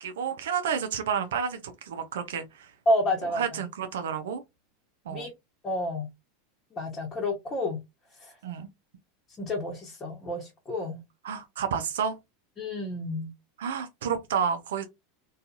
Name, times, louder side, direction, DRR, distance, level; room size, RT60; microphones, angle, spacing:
voice 1, 0.0-2.7 3.3-4.4 5.1-5.3 8.4-8.7 11.2-12.1 13.6-14.9, right 7 dB, 80° right, 0.5 m, -30 dB
voice 2, 2.9-3.6 5.1-5.3 5.6-6.1 6.7-7.8 9.4-11.0 12.6-13.3, left 1 dB, 25° left, 0.9 m, -29 dB
2.6 x 2.3 x 2.4 m
hypercardioid pair, 100°, 0 cm